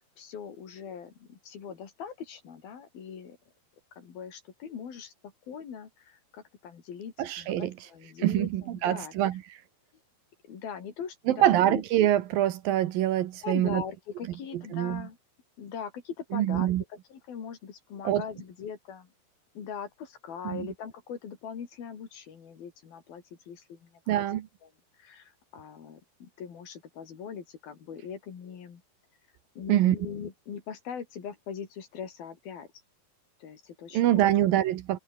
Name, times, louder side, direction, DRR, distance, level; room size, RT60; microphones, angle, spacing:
voice 1, 0.2-3.4 3.9-5.1 5.5-9.1 10.5-11.8 13.4-15.2 15.6-19.1 19.6-24.7 25.0-28.8 29.6-32.7 33.4-34.3, left 7 dB, 65° left, 5.2 m, -41 dB
voice 2, 7.2-7.7 8.2-9.4 11.3-13.8 14.5-15.1 16.3-16.8 18.0-18.2 20.4-20.7 24.1-24.5 29.7-30.0 33.9-35.0, right 13 dB, 70° right, 2.7 m, -25 dB
omnidirectional pair, 4.6 m